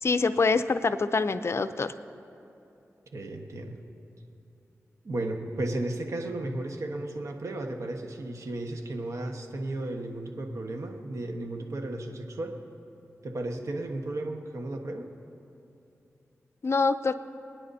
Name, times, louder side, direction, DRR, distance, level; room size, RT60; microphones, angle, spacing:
voice 1, 0.0-1.9 16.6-17.1, left 4 dB, 55° left, 12 dB, 0.5 m, -25 dB
voice 2, 3.1-3.8 5.0-12.5 13.2-15.1, right 2 dB, 70° right, 3 dB, 1.3 m, -34 dB
27.5 x 9.7 x 2.7 m, 2.8 s
cardioid pair, 50°, 5 cm